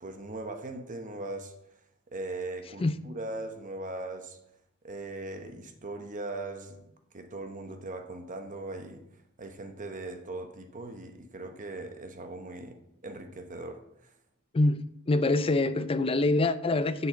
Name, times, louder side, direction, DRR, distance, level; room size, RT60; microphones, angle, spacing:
voice 1, 0.0-1.5 2.1-4.4 4.8-6.9 7.1-9.0 9.4-12.8 13.0-14.1, right 2 dB, 35° right, 1.0 m, -39 dB
voice 2, 14.5-17.1, left 2 dB, 25° left, 0.4 m, -25 dB
6.8 x 6.1 x 7.6 m
head